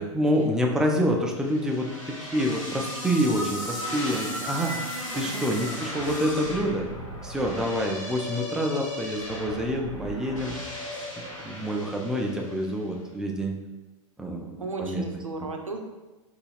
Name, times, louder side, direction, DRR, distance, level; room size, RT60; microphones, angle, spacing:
voice 1, 0.0-6.9 7.2-10.6 11.2-13.6 14.2-15.0, equal, 5° right, 1 dB, 0.3 m, -27 dB
sound 1, 1.4-12.7, equal, 75° left, 1.2 m, -36 dB
voice 2, 5.1-5.5 14.6-15.8, right 2 dB, 90° right, 3 dB, 0.4 m, -35 dB
3.8 x 2.4 x 2.4 m, 1.1 s
figure-of-eight pair, 90°, 17 cm